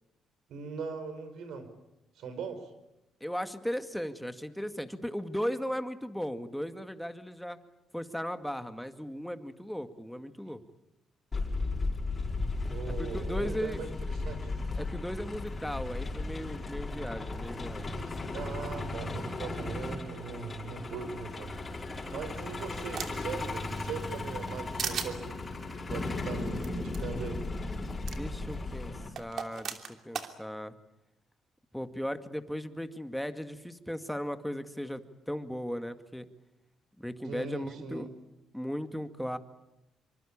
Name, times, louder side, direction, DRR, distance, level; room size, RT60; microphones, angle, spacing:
voice 1, 0.5-1.7 2.1-2.7 12.7-14.4 18.3-21.5 22.1-25.3 25.9-27.4 37.2-38.1, right 5 dB, 75° right, 10 dB, 5.1 m, -40 dB
voice 2, 3.2-7.6 7.9-10.6 13.0-13.8 14.8-17.9 28.1-30.8 31.7-36.3 37.0-38.1 38.5-39.4, equal, ahead, 8 dB, 2.1 m, -37 dB
Truck, 11.3-29.1, left 2 dB, 30° left, 5.8 m, -36 dB
sound 1, 22.0-23.3 23.8-24.5 24.8-25.1 26.6-26.7 26.9-27.0 28.1-28.2 29.2-30.3, right 7 dB, 60° right, 2.9 m, -37 dB
27.0 x 24.5 x 8.8 m, 0.90 s
cardioid pair, 90°, 0 cm